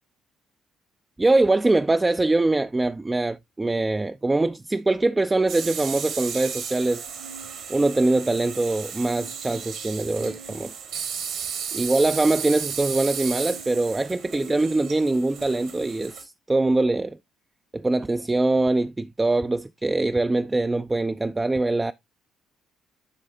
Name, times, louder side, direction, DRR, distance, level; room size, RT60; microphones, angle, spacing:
voice 1, 1.2-7.0 7.7-10.7 11.7-17.2 17.7-21.9, right 2 dB, 15° right, 0.3 m, -23 dB
sound 1, 5.5-16.2, right 7 dB, 60° right, 1.3 m, -34 dB
11.0 x 4.0 x 2.6 m
figure-of-eight pair, 45°, 0 cm